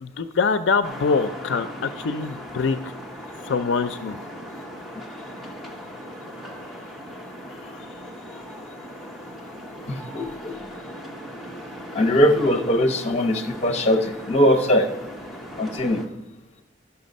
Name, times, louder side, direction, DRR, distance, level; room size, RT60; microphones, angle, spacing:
voice 1, 0.0-2.8 3.5-4.2, left 4 dB, 80° left, 12 dB, 0.4 m, -24 dB
sound 1, 0.8-16.1, equal, ahead, 0.9 m, -38 dB
voice 2, 9.9-10.5 11.9-14.9 15.6-16.0, equal, 35° left, 4 dB, 0.9 m, -21 dB
12.0 x 5.8 x 5.2 m, 0.92 s
head